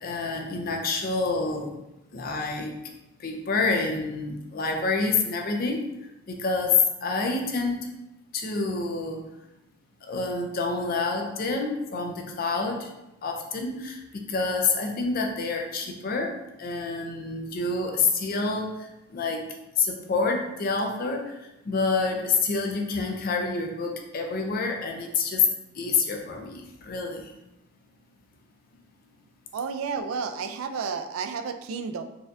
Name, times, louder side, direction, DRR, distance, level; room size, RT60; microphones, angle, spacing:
voice 1, 0.0-1.7 2.1-2.8 3.2-5.9 6.3-7.9 8.3-9.2 10.0-12.9 13.2-19.5 19.8-25.5 25.7-27.3, left 4 dB, 45° left, 2 dB, 0.4 m, -27 dB
voice 2, 29.5-32.0, right 5 dB, 80° right, 8 dB, 0.3 m, -31 dB
4.1 x 2.3 x 2.5 m, 0.94 s
head